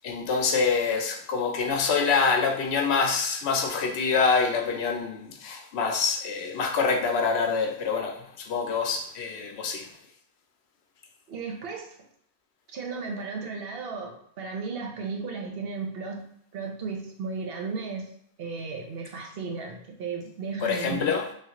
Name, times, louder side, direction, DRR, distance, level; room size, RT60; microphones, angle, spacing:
voice 1, 0.0-9.9 20.6-21.2, left 5 dB, 90° left, 3 dB, 0.9 m, -26 dB
voice 2, 11.3-11.9 12.7-16.2 16.5-21.1, right 4 dB, 70° right, 1 dB, 0.8 m, -35 dB
3.1 x 2.4 x 2.8 m, 0.66 s
omnidirectional pair, 1.1 m